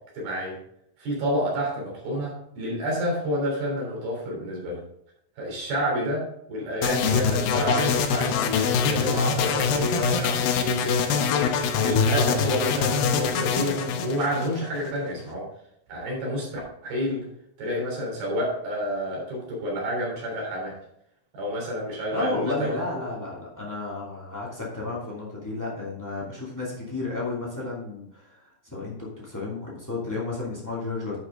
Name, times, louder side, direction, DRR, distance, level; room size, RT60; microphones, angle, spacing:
voice 1, 0.2-0.6 1.0-4.8 5.4-15.5 15.9-17.2 17.6-20.8 21.3-22.7, equal, 55° right, -2 dB, 5.2 m, -29 dB
sound 1, 6.8-14.9, left 6 dB, 80° left, 2.2 m, -24 dB
voice 2, 22.1-31.2, left 2 dB, 15° left, -5 dB, 0.5 m, -32 dB
11.5 x 6.5 x 3.7 m, 0.75 s
omnidirectional pair, 5.3 m